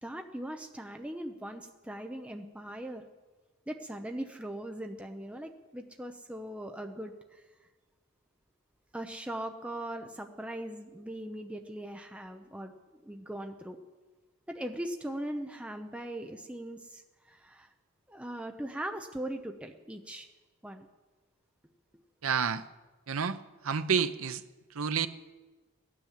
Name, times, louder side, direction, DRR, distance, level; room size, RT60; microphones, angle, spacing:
voice 1, 0.0-3.0 3.7-7.4 8.9-12.7 13.0-13.8 14.5-17.7 18.1-20.3 20.6-20.9, right 1 dB, 5° right, 0.6 m, -40 dB
voice 2, 22.2-22.6 23.1-23.4 23.6-24.4 24.7-25.1, right 6 dB, 70° right, 0.7 m, -29 dB
16.0 x 9.9 x 7.4 m
head